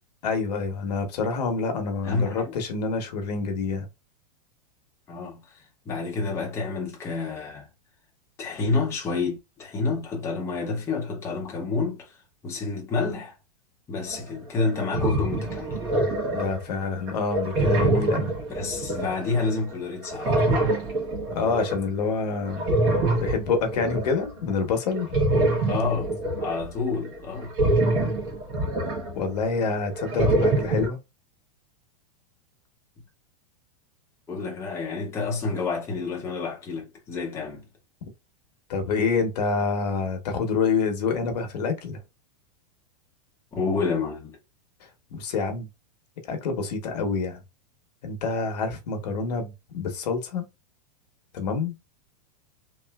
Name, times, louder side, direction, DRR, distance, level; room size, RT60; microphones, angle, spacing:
voice 1, 0.2-3.9 16.3-18.3 21.3-22.7 23.2-25.1 29.1-31.0 38.0-38.1 38.7-42.0 45.1-45.7 46.3-47.4 48.0-50.5 51.3-51.8, left 4 dB, 75° left, 1.0 m, -27 dB
voice 2, 2.0-2.6 5.1-7.7 8.4-12.2 12.4-13.3 13.9-15.8 18.5-20.7 25.7-26.1 26.4-27.5 34.3-37.6 43.5-44.4, left 4 dB, 15° left, 0.7 m, -29 dB
sound 1, 14.1-14.2 14.6-16.6 17.1-19.8 20.0-21.8 22.5-24.3 25.0-29.6 29.9-30.9, right 2 dB, 40° right, 1.4 m, -25 dB
3.2 x 2.6 x 2.2 m
supercardioid pair, 160°, 21 cm